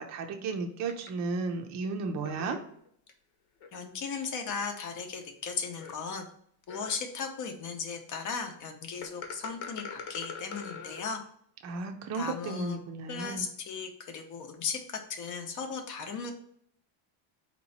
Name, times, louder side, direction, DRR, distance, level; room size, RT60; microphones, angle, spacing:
voice 1, 0.0-2.6 11.6-13.5, right 4 dB, 35° right, 4 dB, 0.5 m, -34 dB
sound 1, 0.9-1.1 2.2-3.1 3.6-3.7 4.5-4.6 5.2-5.3 5.8-5.9 6.7-7.2 9.0-11.1, left 6 dB, 80° left, 1.1 m, -41 dB
voice 2, 3.7-6.2 6.7-11.2 12.1-12.8 13.1-16.3, left 5 dB, 40° left, 6 dB, 0.7 m, -36 dB
4.3 x 3.0 x 4.1 m, 0.66 s
cardioid pair, 160°, 48 cm